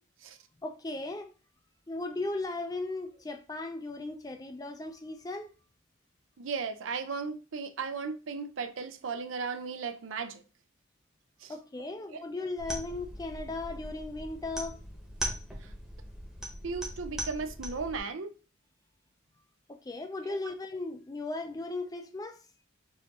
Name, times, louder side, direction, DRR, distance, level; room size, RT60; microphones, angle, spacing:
voice 1, 0.6-1.3 1.9-5.5 11.5-14.8 19.7-22.4, left 2 dB, 20° left, 0.4 m, -37 dB
voice 2, 6.4-10.4 11.4-11.5 12.1-12.2 15.6-15.7 16.6-18.3 20.2-20.4, right 5 dB, 75° right, 0.5 m, -36 dB
sound 1, 12.6-18.0, right 1 dB, 5° right, 0.9 m, -40 dB
4.2 x 2.6 x 3.6 m
head